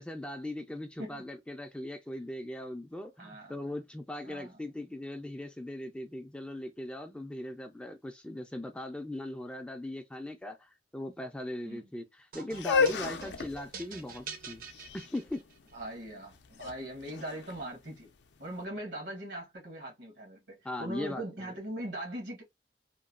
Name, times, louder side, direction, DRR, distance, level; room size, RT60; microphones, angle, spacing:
voice 1, 0.0-14.6 14.9-15.4 20.6-21.5, left 1 dB, 5° left, 0.3 m, -39 dB
voice 2, 3.2-3.6 4.2-4.6 11.6-11.9 13.2-13.3 15.7-18.1 18.4-22.4, right 1 dB, 75° right, 1.3 m, -41 dB
sound 1, 12.3-15.7, right 5 dB, 55° right, 0.7 m, -46 dB
sound 2, 12.5-18.4, left 5 dB, 70° left, 0.4 m, -33 dB
2.9 x 2.2 x 2.2 m
head